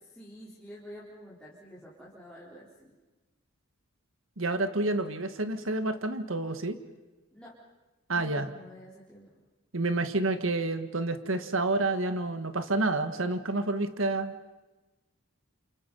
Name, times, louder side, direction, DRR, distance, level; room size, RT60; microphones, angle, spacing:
voice 1, 0.0-2.9 7.3-7.5 8.2-9.4, equal, 5° left, -8 dB, 4.1 m, -49 dB
voice 2, 4.4-6.8 8.1-8.5 9.7-14.3, right 2 dB, 75° right, 9 dB, 1.7 m, -29 dB
29.5 x 28.0 x 5.5 m, 1.2 s
head